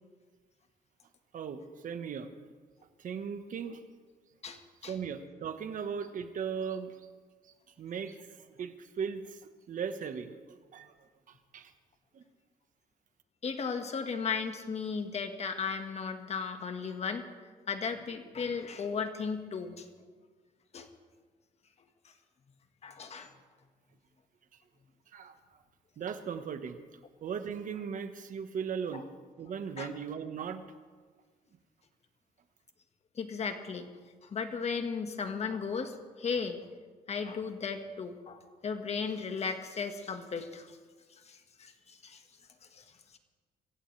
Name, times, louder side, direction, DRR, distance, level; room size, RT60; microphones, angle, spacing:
voice 1, 1.3-2.3 3.0-3.8 4.8-7.0 7.8-9.4 9.7-10.9 11.3-11.7 12.1-12.2 25.1-25.4 26.0-26.8 27.2-29.0 29.4-30.6, right 7 dB, 55° right, 8 dB, 1.3 m, -38 dB
voice 2, 4.4-4.9 13.4-17.3 17.7-19.9 20.7-20.9 22.8-23.3 28.9-29.0 29.8-29.9 33.1-33.9 34.2-36.6 37.1-40.7 41.2-42.2 42.7-42.8, left 5 dB, 40° left, 6 dB, 1.7 m, -35 dB
26.0 x 15.5 x 3.4 m, 1.5 s
cardioid pair, 120°, 16 cm